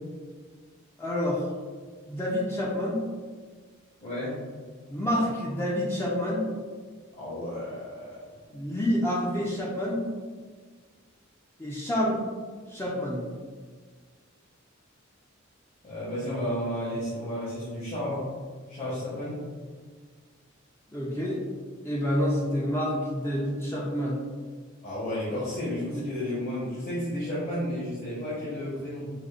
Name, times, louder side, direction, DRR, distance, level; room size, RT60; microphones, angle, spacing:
voice 1, 1.0-1.5 2.1-3.0 4.9-6.5 8.5-10.1 11.6-12.2 12.7-13.2 20.9-21.4 21.8-24.2 25.9-26.0, equal, 10° left, -5 dB, 0.4 m, -28 dB
voice 2, 4.0-4.4 7.2-8.2 15.8-18.3 18.7-19.4 24.8-29.1, left 1 dB, 40° left, -11 dB, 1.0 m, -32 dB
4.9 x 2.1 x 2.4 m, 1.5 s
head